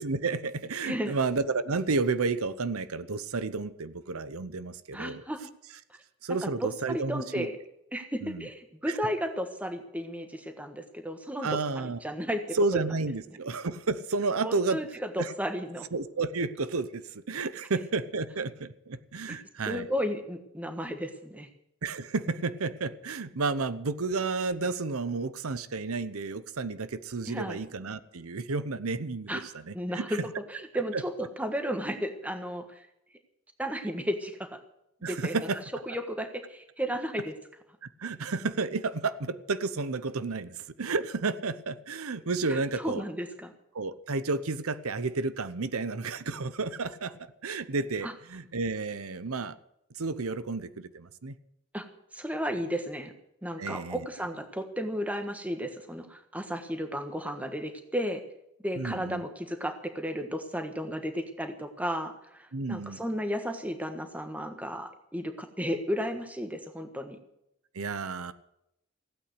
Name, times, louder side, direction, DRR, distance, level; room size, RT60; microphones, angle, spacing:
voice 1, 0.0-5.2 6.2-7.5 8.2-8.5 8.9-9.0 11.4-12.0 12.5-14.8 15.2-15.3 15.9-19.9 21.8-29.3 29.7-30.2 30.9-31.0 35.0-35.6 38.0-43.0 43.7-49.5 49.9-51.3 53.6-54.0 58.8-59.2 62.5-63.0 67.7-68.3, right 3 dB, 90° right, 14 dB, 0.8 m, -31 dB
voice 2, 0.8-1.2 4.9-5.4 6.4-7.6 7.9-11.5 11.7-12.8 14.4-15.9 19.3-19.4 19.7-21.5 27.3-27.6 29.3-29.4 29.7-30.2 30.5-32.9 33.6-34.6 35.1-35.4 35.9-37.3 42.5-43.5 48.0-48.1 51.7-51.9 52.1-53.1 53.4-58.2 58.6-67.2, equal, 5° right, 7 dB, 1.3 m, -34 dB
16.0 x 8.8 x 8.0 m, 0.82 s
head